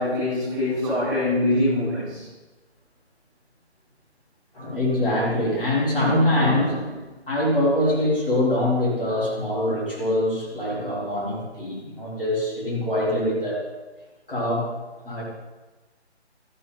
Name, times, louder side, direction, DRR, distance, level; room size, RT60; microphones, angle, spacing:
voice 1, 0.0-2.2, left 1 dB, 5° right, -13 dB, 4.8 m, -23 dB
voice 2, 4.5-13.6 14.3-14.7 15.0-15.2, left 1 dB, 50° left, -5 dB, 4.2 m, -24 dB
13.0 x 11.0 x 4.0 m, 1.2 s
hypercardioid pair, 180°, 34 cm